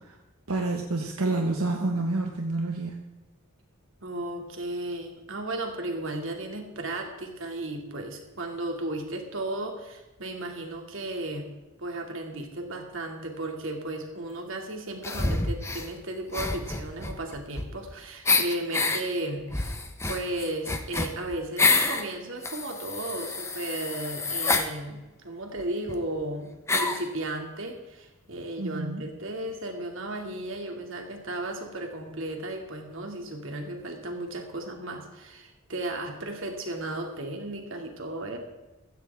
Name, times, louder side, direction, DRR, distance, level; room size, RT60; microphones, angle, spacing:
voice 1, 0.5-3.0 28.6-29.0, right 2 dB, 80° right, 2 dB, 1.3 m, -28 dB
voice 2, 4.0-11.5 11.8-19.8 20.1-38.4, right 1 dB, 60° right, 2 dB, 2.6 m, -35 dB
sound 1, 15.0-15.9 16.3-17.9 18.2-19.0 19.5-22.0 22.4-24.7 25.6-25.7 25.9-26.0 26.7-27.1, left 3 dB, 10° left, 1.0 m, -27 dB
15.5 x 15.0 x 3.6 m, 1.1 s
head